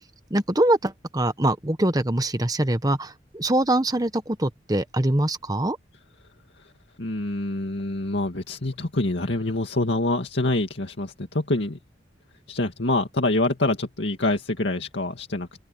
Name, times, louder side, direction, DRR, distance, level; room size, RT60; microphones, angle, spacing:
voice 1, 0.3-5.8, right 1 dB, 20° right, 1.2 m, -23 dB
voice 2, 7.0-11.8 12.5-15.5, left 2 dB, 70° left, 2.2 m, -26 dB
open air
head